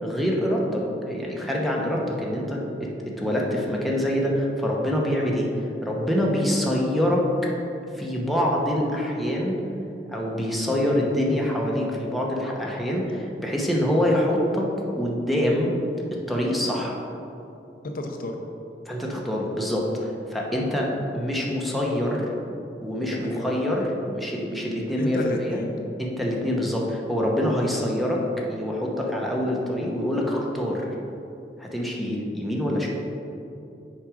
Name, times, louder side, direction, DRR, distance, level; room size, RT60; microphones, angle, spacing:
voice 1, 0.0-5.5 5.8-7.2 8.0-9.5 10.1-14.7 15.0-15.7 16.3-17.0 18.9-22.3 22.8-23.9 24.1-25.2 25.5-25.6 26.0-28.2 28.5-30.9 31.6-32.9, equal, ahead, -3 dB, 0.9 m, -25 dB
voice 2, 12.7-13.1 17.8-18.4 23.0-23.5 24.9-25.7, left 1 dB, 55° left, 3 dB, 0.6 m, -32 dB
6.0 x 4.9 x 4.9 m, 2.7 s
head